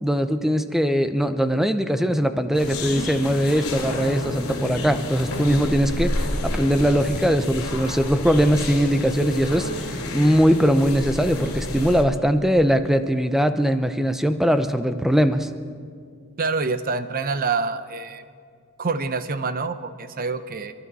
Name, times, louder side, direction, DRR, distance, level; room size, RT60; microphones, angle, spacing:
voice 1, 0.0-15.5, equal, ahead, 9 dB, 0.6 m, -21 dB
sound 1, 2.5-12.0, left 1 dB, 85° left, 2.6 m, -29 dB
voice 2, 16.4-18.2 18.8-20.7, right 4 dB, 40° right, 12 dB, 0.7 m, -26 dB
29.5 x 12.0 x 4.1 m, 2.2 s
head